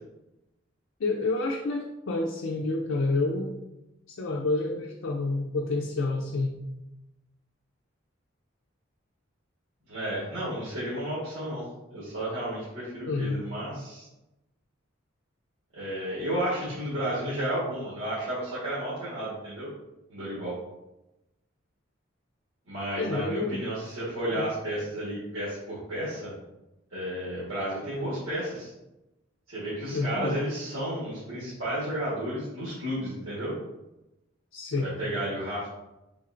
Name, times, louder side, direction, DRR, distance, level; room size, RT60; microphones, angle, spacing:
voice 1, 1.0-3.5 4.1-6.6 13.1-13.4 23.0-23.6 24.3-24.5 29.9-30.4 34.5-35.0, left 2 dB, 75° left, 0 dB, 0.5 m, -29 dB
voice 2, 9.9-14.1 15.7-19.7 20.1-20.6 22.7-26.3 26.9-28.7 29.5-33.5 34.8-35.7, right 1 dB, 85° right, -10 dB, 1.4 m, -32 dB
4.3 x 3.9 x 2.5 m, 0.95 s
head